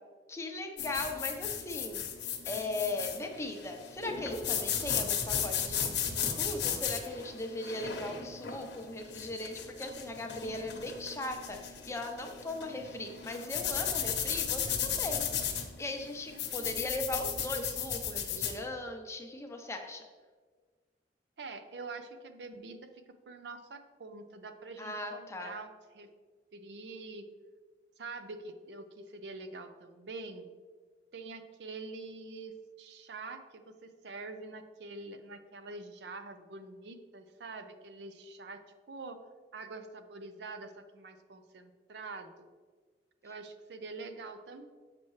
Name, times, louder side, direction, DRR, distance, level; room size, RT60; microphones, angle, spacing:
voice 1, 0.3-2.0 2.4-15.3 15.8-20.0 24.8-25.5, left 2 dB, 15° left, 3 dB, 0.7 m, -38 dB
sound 1, 0.8-18.6, left 8 dB, 70° left, 0.9 m, -35 dB
voice 2, 16.3-16.9 21.4-25.7 25.9-26.1 26.5-27.3 28.0-30.5 31.1-38.6 38.9-39.2 39.5-42.5 43.2-44.7, right 3 dB, 70° right, 8 dB, 0.5 m, -45 dB
7.4 x 5.7 x 3.2 m, 1.5 s
head